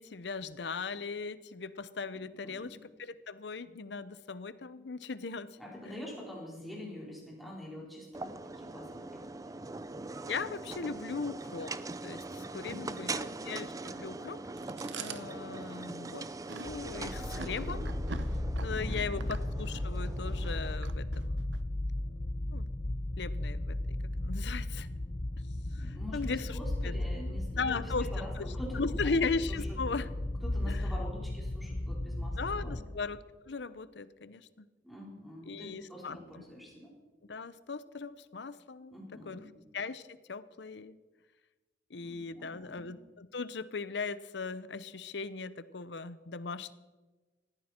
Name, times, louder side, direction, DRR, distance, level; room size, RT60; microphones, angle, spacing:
voice 1, 0.0-5.5 5.8-5.9 10.3-11.7 12.0-14.4 14.9-16.3 16.5-18.0 18.6-21.6 22.5-22.7 23.2-23.8 24.2-24.9 25.7-26.5 26.8-26.9 27.6-30.1 30.7-30.8 32.4-34.7 35.5-36.4 37.3-39.0 39.3-39.4 39.7-41.0 41.9-46.7, left 4 dB, 65° left, 15 dB, 0.7 m, -38 dB
voice 2, 2.1-2.8 5.6-9.7 12.6-13.3 18.7-19.3 25.8-29.1 29.5-29.8 30.1-30.2 30.4-32.8 34.8-36.9 38.9-39.6 42.0-42.9, left 1 dB, ahead, -3 dB, 4.3 m, -46 dB
sound 1, 8.1-20.8, right 3 dB, 20° right, 0.5 m, -42 dB
Chewing mastication, 14.6-21.6, right 5 dB, 75° right, 0.9 m, -46 dB
sound 2, 16.6-32.8, left 1 dB, 35° left, 0.7 m, -35 dB
19.5 x 14.5 x 4.4 m, 1.3 s
head